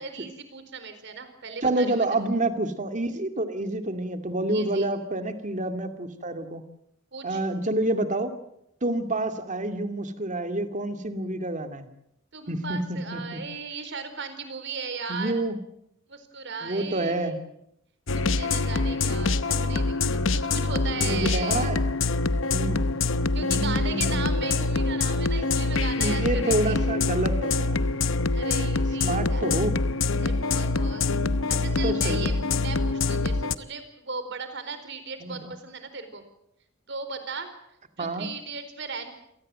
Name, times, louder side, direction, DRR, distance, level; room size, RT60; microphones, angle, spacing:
voice 1, 0.0-2.1 4.5-4.9 7.1-7.4 12.3-15.4 16.1-17.4 18.1-21.7 23.3-26.8 28.3-29.5 30.2-31.0 31.5-36.2 36.9-37.5 38.0-39.1, right 5 dB, 60° right, 9 dB, 4.3 m, -37 dB
voice 2, 1.6-6.6 7.2-8.3 8.8-11.9 12.5-13.4 15.1-15.6 16.6-17.4 21.0-21.8 22.5-22.8 23.4-24.4 26.0-27.8 29.0-29.7 31.8-32.4 35.2-35.5 38.0-38.3, right 2 dB, 40° right, 7 dB, 2.4 m, -28 dB
sound 1, 18.1-33.5, left 3 dB, 70° left, 0.9 m, -25 dB
28.0 x 18.5 x 7.7 m, 0.79 s
head